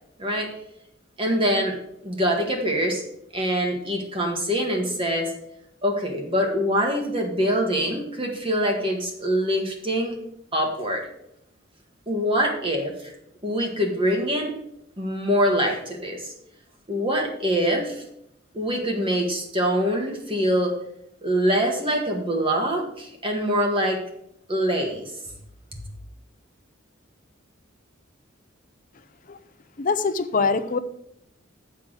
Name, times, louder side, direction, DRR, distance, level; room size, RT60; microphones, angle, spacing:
voice 1, 0.2-0.5 1.2-1.7 2.0-3.0 3.3-5.3 5.8-10.2 10.5-11.0 12.1-13.1 13.4-14.5 15.0-16.3 16.9-18.0 18.5-20.7 21.2-24.0 24.5-25.1, equal, 25° right, 2 dB, 1.7 m, -24 dB
voice 2, 29.8-30.8, left 4 dB, 45° left, 11 dB, 0.6 m, -23 dB
7.3 x 5.8 x 6.4 m, 0.77 s
head